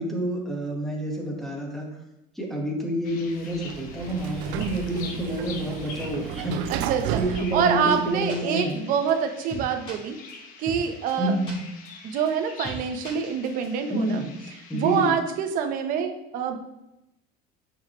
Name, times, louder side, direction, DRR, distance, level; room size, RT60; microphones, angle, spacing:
voice 1, 0.0-1.9 2.3-6.7 7.2-9.0 11.2-11.6 13.9-14.4 14.7-15.2, right 1 dB, ahead, -1 dB, 1.1 m, -28 dB
sound 1, 3.0-15.1, left 5 dB, 50° left, 0.8 m, -45 dB
Sliding door, 3.3-8.5, right 12 dB, 85° right, 0.4 m, -34 dB
voice 2, 6.7-10.2 10.6-11.3 12.0-14.2 14.7-16.6, right 7 dB, 50° right, 6 dB, 0.7 m, -26 dB
sound 2, 7.9-8.0 8.3-8.4 8.7-8.8 9.1-9.2 9.5-9.9 10.3-10.4 10.7-10.8 11.1-11.2 11.5-11.6 11.9-12.0 12.3-12.4 12.6-12.8 13.0-13.7, right 1 dB, 25° left, 2.0 m, -38 dB
9.2 x 4.5 x 2.9 m, 0.92 s
cardioid pair, 170°, 18 cm